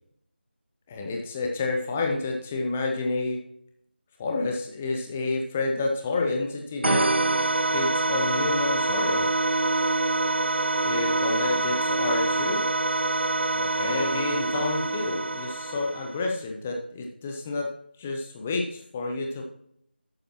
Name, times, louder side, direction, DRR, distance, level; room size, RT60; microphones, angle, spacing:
voice 1, 0.9-3.4 4.2-7.1 7.7-9.3 10.8-12.6 13.5-17.7 18.0-19.4, left 3 dB, 5° left, 2 dB, 0.4 m, -29 dB
sound 1, 6.8-16.3, right 2 dB, 70° right, 0.6 m, -25 dB
12.0 x 8.7 x 2.9 m, 0.70 s
figure-of-eight pair, 165°, 6 cm